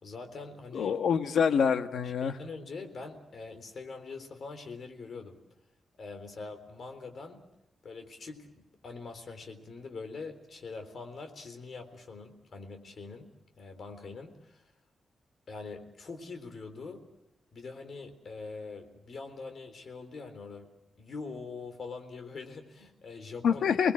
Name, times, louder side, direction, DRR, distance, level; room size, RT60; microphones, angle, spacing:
voice 1, 0.0-1.0 2.0-5.4 6.0-7.4 7.8-13.3 13.6-14.6 15.5-17.0 17.5-20.7 21.0-23.6, left 4 dB, 50° left, 6 dB, 3.7 m, -43 dB
voice 2, 0.7-2.4 23.4-23.9, left 7 dB, 90° left, 9 dB, 1.2 m, -26 dB
29.5 x 20.0 x 7.6 m, 0.90 s
wide cardioid pair, 160°, 0 cm